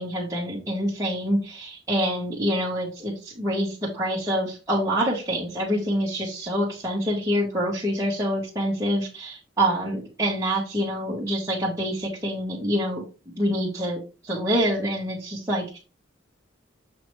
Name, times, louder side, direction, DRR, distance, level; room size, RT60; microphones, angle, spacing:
voice 1, 0.0-13.0 13.4-15.8, equal, 15° right, -6 dB, 1.3 m, -26 dB
6.4 x 5.0 x 3.2 m, 0.32 s
head